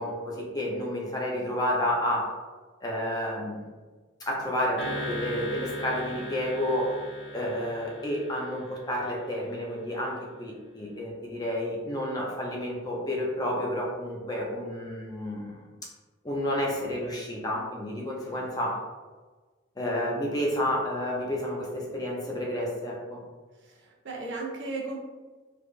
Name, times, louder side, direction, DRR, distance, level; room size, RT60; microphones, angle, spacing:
voice 1, 0.0-2.3 2.8-3.7 4.2-6.9 7.3-15.7 16.2-18.8 19.8-23.2, left 1 dB, 20° left, -3 dB, 0.5 m, -30 dB
sound 1, 4.8-9.3, left 1 dB, 70° left, 0.7 m, -38 dB
voice 2, 17.9-18.5 23.5-25.0, right 3 dB, 65° right, -2 dB, 0.6 m, -37 dB
3.4 x 2.4 x 2.4 m, 1.3 s
head